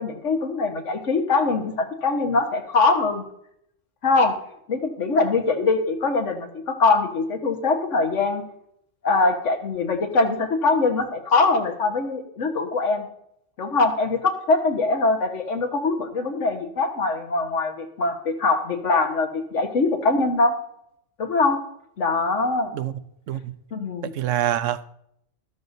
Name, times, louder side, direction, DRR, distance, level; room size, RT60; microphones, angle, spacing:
voice 1, 0.0-3.2 4.0-4.4 4.7-8.4 9.0-13.1 13.6-20.6 21.2-21.6 22.0-22.7 23.7-24.1, left 3 dB, 75° left, 1.7 m, -22 dB
voice 2, 24.0-24.9, right 11 dB, 80° right, 1.0 m, -26 dB
13.5 x 13.0 x 2.7 m
omnidirectional pair, 1.3 m